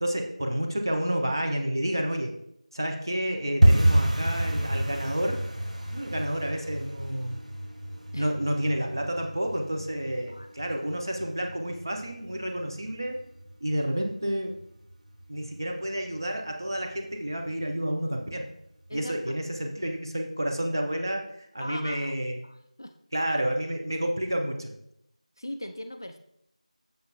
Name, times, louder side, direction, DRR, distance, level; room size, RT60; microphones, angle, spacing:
voice 1, 0.0-2.3 2.7-5.4 5.9-7.4 8.2-13.2 13.6-14.5 15.3-18.5 18.9-22.4 23.1-24.7, right 1 dB, 30° right, 3 dB, 1.2 m, -30 dB
sound 1, 3.6-14.3 14.6-15.3 15.5-15.8 16.1-16.5 16.8-16.9 17.4-17.9 18.3-18.4 18.9-19.0, right 1 dB, 70° right, 1.4 m, -28 dB
voice 2, 21.6-22.1 22.4-22.9 25.4-26.2, left 1 dB, 30° left, 7 dB, 0.5 m, -39 dB
7.6 x 7.1 x 3.9 m, 0.75 s
figure-of-eight pair, 175°, 4 cm